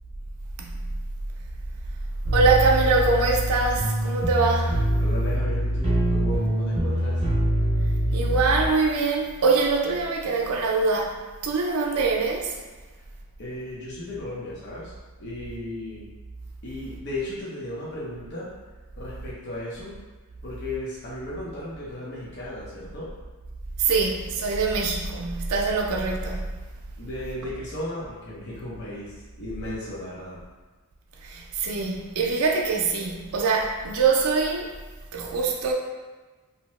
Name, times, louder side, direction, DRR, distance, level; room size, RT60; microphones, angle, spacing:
sound 1, 2.2-8.7, right 1 dB, 25° right, 0.5 m, -24 dB
voice 1, 2.3-4.8 8.1-11.2 11.4-12.6 23.8-26.5 31.2-34.7 35.1-35.7, right 4 dB, 80° right, -1 dB, 0.4 m, -23 dB
voice 2, 5.0-7.2 13.4-14.9 15.2-16.1 16.6-18.5 19.0-19.9 20.4-23.1 27.0-30.4, left 1 dB, 50° left, -7 dB, 0.7 m, -35 dB
2.7 x 2.1 x 3.0 m, 1.3 s
head